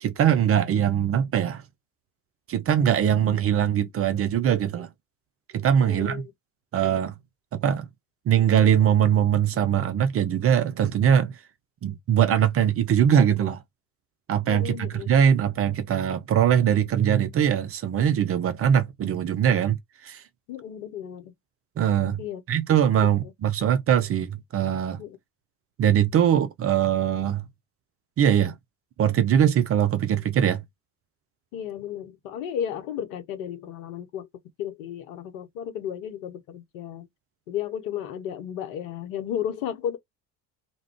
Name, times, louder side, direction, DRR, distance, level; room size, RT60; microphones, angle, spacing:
voice 1, 0.0-1.6 2.5-4.9 5.5-6.3 6.7-7.1 7.6-7.9 8.3-11.3 11.8-13.6 14.3-19.8 20.0-20.2 21.8-22.2 22.5-25.0 25.8-27.4 28.2-28.5 29.0-30.6, right 9 dB, 35° right, 0.4 m, -22 dB
voice 2, 5.8-6.3 14.5-15.1 20.5-21.3 22.2-22.4 25.0-25.2 31.5-34.3 34.6-37.1 37.5-40.0, left 9 dB, 70° left, 0.8 m, -33 dB
2.3 x 2.1 x 3.5 m
hypercardioid pair, 65°, 43 cm